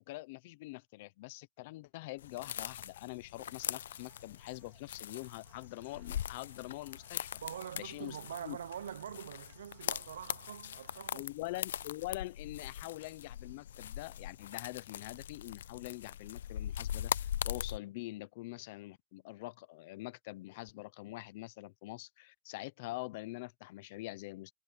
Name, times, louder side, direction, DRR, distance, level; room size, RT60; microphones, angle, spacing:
voice 1, 0.0-7.3 7.8-8.2 8.4-8.6 11.1-24.5, left 20 dB, 35° left, 0.7 m, -44 dB
sound 1, 2.2-17.8, left 10 dB, 65° left, 0.4 m, -41 dB
sound 2, 3.5-11.1, right 17 dB, 25° right, 2.3 m, -69 dB
voice 2, 7.4-11.3, right 9 dB, 85° right, 0.8 m, -44 dB
supercardioid pair, 180°, 0 cm